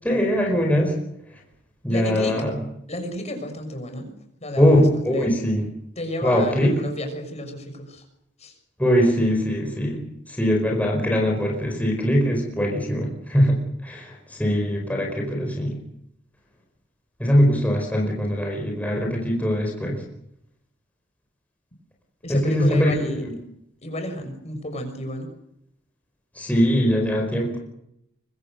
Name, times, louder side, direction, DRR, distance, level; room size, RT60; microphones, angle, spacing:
voice 1, 0.0-0.9 1.8-2.5 4.6-5.6 6.2-6.7 8.8-10.0 10.3-15.7 17.2-20.0 22.3-22.9 26.4-27.6, equal, 10° left, 0 dB, 4.9 m, -21 dB
voice 2, 1.9-2.4 2.9-4.1 4.4-5.4 6.0-8.0 8.4-8.5 14.9-15.1 22.2-23.3 23.8-25.3, left 1 dB, 35° left, 5 dB, 6.4 m, -32 dB
25.0 x 24.0 x 6.7 m, 0.78 s
head